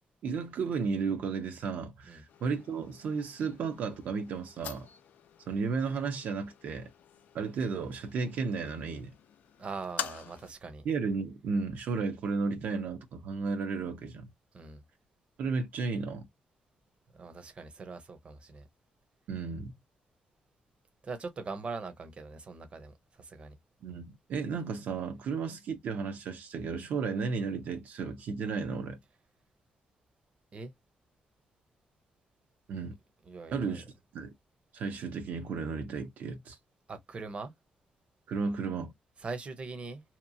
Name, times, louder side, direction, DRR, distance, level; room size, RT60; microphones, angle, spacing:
voice 1, 0.2-4.9 5.5-6.9 7.3-9.2 10.8-14.3 15.4-16.2 19.3-19.7 23.8-29.0 32.7-33.0 33.5-33.9 34.1-34.3 34.7-36.6 38.3-38.9, right 5 dB, 75° right, 0.7 m, -33 dB
sound 1, 2.3-10.5, left 9 dB, 80° left, 0.4 m, -46 dB
voice 2, 9.6-10.9 14.5-14.8 17.1-18.7 21.0-23.6 30.5-30.7 33.3-33.8 36.9-37.5 39.2-40.0, right 4 dB, 40° right, 0.7 m, -41 dB
2.9 x 2.2 x 2.6 m
cardioid pair, 90°, 3 cm